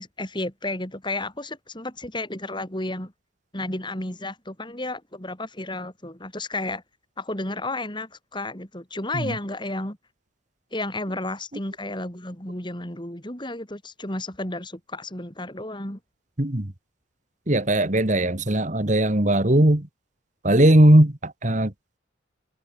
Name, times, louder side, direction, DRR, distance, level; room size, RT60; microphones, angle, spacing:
voice 1, 0.0-3.1 3.5-6.8 7.2-10.0 10.7-16.0, left 2 dB, 25° left, 4.7 m, -32 dB
voice 2, 16.4-16.7 17.5-19.9 20.4-21.7, right 1 dB, 35° right, 1.9 m, -19 dB
head